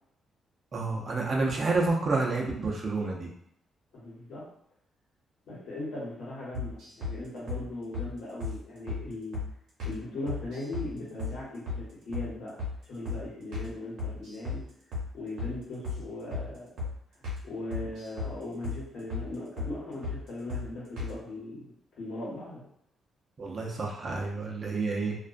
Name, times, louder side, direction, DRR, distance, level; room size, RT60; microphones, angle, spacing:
voice 1, 0.7-3.3 23.4-25.2, right 3 dB, 45° right, -2 dB, 0.6 m, -29 dB
voice 2, 3.9-4.5 5.5-9.4 9.8-12.6 12.9-14.6 15.1-16.7 17.4-22.6, left 2 dB, 80° left, -6 dB, 1.1 m, -39 dB
sound 1, 6.5-7.2 7.5-7.6 7.9-8.1 8.4-8.6 8.9-9.0 9.3-9.5 9.8-10.0 10.3-10.9 11.2-11.4 11.7-11.8 12.1-12.3 12.6-12.8 13.1-13.2 13.5-13.7 14.0-14.6 14.9-15.1 15.4-15.5 15.8-16.0 16.3-16.5 16.8-16.9 17.2-17.4 17.7-18.3 18.6-18.8 19.1-19.3 19.6-19.7 20.0-20.2 20.5-20.7 21.0-21.1, left 4 dB, 80° right, 0.8 m, -34 dB
2.3 x 2.1 x 2.5 m, 0.74 s
cardioid pair, 100°, 0 cm